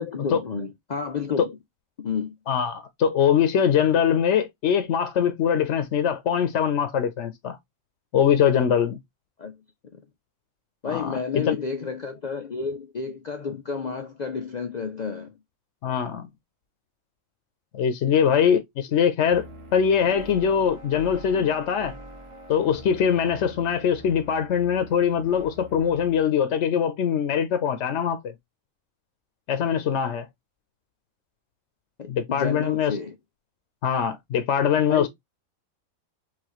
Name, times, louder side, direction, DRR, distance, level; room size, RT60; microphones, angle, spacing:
voice 1, 0.0-1.6 2.0-2.3 9.4-9.6 10.8-15.3 21.3-21.5 32.0-33.1 34.9-35.1, left 5 dB, 85° left, 0.3 m, -31 dB
voice 2, 2.5-7.6 8.1-9.0 10.9-11.2 11.5-11.6 15.8-16.3 17.7-19.4 19.7-21.9 22.5-28.3 29.5-30.3 32.1-33.0 33.8-35.1, left 8 dB, 60° left, 0.9 m, -22 dB
sound 1, 19.3-26.2, right 1 dB, 25° right, 1.0 m, -44 dB
5.9 x 2.6 x 2.9 m
omnidirectional pair, 1.5 m